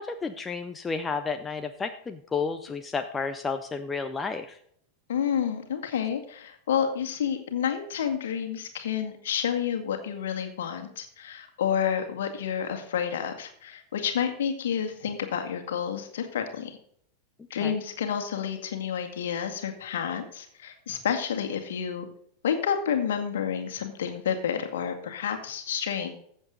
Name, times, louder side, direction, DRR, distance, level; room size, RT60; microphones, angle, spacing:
voice 1, 0.0-4.6 17.6-17.8, left 4 dB, 15° left, 8 dB, 0.7 m, -31 dB
voice 2, 5.1-16.8 17.5-22.1 22.4-26.2, left 8 dB, 60° left, 5 dB, 1.9 m, -29 dB
15.0 x 7.4 x 4.0 m, 0.65 s
figure-of-eight pair, 90°, 0 cm